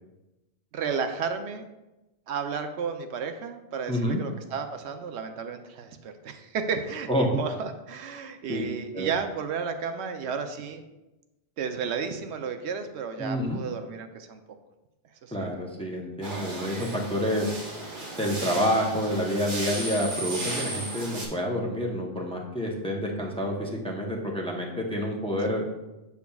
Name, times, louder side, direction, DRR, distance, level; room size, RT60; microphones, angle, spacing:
voice 1, 0.7-1.7 2.3-10.8 11.6-14.4 15.2-15.5, right 6 dB, 90° right, 7 dB, 0.9 m, -33 dB
voice 2, 3.9-4.2 7.1-7.3 8.5-8.6 8.9-9.1 13.2-13.6 15.3-17.5 18.2-25.6, equal, 5° left, 0 dB, 0.7 m, -28 dB
sound 1, 16.2-21.3, right 2 dB, 50° right, 1.3 m, -35 dB
6.9 x 6.8 x 2.3 m, 1.0 s
omnidirectional pair, 1.1 m